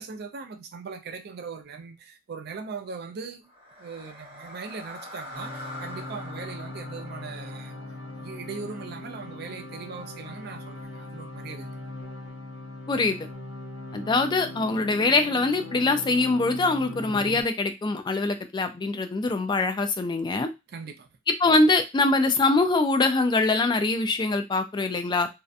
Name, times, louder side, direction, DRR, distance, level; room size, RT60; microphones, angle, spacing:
voice 1, 0.0-3.5 3.8-7.7 8.2-11.7 20.7-21.1, right 5 dB, 55° right, 0.4 m, -39 dB
sound 1, 3.4-9.6, left 1 dB, 30° right, 0.7 m, -44 dB
sound 2, 5.3-17.4, left 2 dB, 85° left, 0.6 m, -40 dB
voice 2, 12.9-13.2 13.9-20.5 21.4-25.3, left 3 dB, 25° left, 0.3 m, -23 dB
2.7 x 2.1 x 2.4 m
head